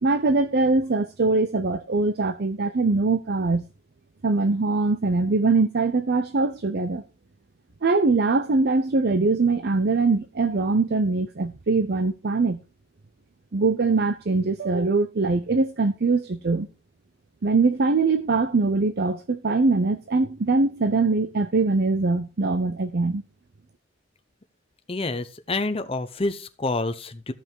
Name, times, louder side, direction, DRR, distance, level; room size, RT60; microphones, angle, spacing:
voice 1, 0.0-3.7 4.2-7.0 7.8-12.6 13.5-16.7 17.4-23.2, right 3 dB, 50° right, 0.6 m, -22 dB
voice 2, 24.9-27.3, left 2 dB, 25° left, 0.8 m, -28 dB
14.0 x 5.6 x 4.6 m
head